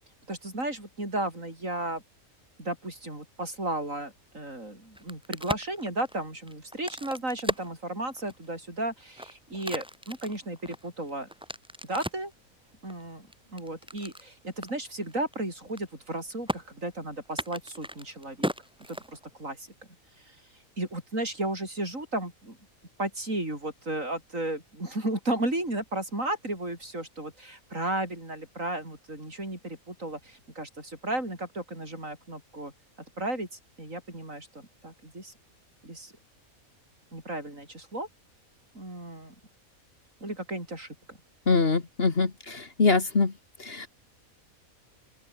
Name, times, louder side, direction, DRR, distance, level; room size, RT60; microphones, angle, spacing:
voice 1, 0.3-2.0 2.6-11.3 11.8-12.3 12.8-18.5 18.9-19.7 20.2-20.4 20.8-22.6 23.0-32.7 33.2-35.3 35.8-36.1 37.1-38.1 38.7-39.3 40.2-41.2, right 1 dB, 65° right, 7.9 m, -34 dB
Crack, 4.8-8.5 9.0-12.3 12.9-14.3 14.6-14.7 15.0-15.3 15.6-16.1 16.5-16.6 17.3-19.5, equal, 5° right, 2.7 m, -36 dB
voice 2, 41.5-43.3 43.6-43.9, left 4 dB, 45° left, 2.0 m, -24 dB
open air
omnidirectional pair, 1.5 m